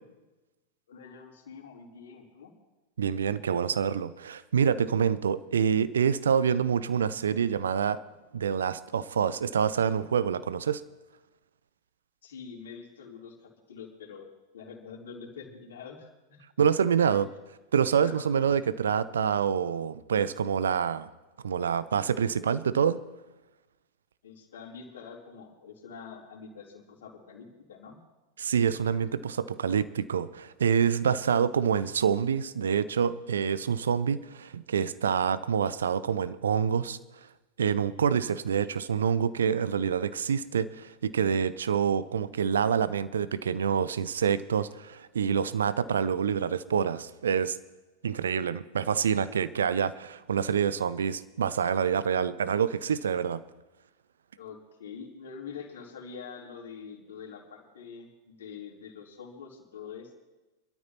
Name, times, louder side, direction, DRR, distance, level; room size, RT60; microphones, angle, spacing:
voice 1, 0.9-2.5 12.2-14.3 14.5-16.4 17.1-17.2 17.9-18.3 24.2-28.0 54.4-60.2, left 6 dB, 65° left, -1 dB, 3.5 m, -45 dB
voice 2, 3.0-8.0 8.3-10.8 16.6-17.3 17.7-21.1 21.4-23.0 28.4-37.0 37.6-47.6 48.0-53.4, right 7 dB, 65° right, 15 dB, 0.7 m, -27 dB
25.5 x 12.5 x 3.0 m, 1.1 s
figure-of-eight pair, 90°, 0 cm